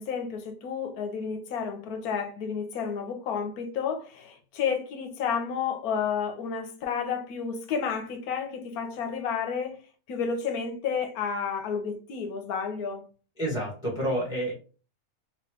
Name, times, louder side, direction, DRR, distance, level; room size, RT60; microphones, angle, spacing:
voice 1, 0.0-9.8 10.1-13.1, left 6 dB, 80° left, 1.2 m, -31 dB
voice 2, 13.4-14.5, right 1 dB, 5° right, 1.0 m, -29 dB
3.0 x 3.0 x 3.4 m
omnidirectional pair, 1.6 m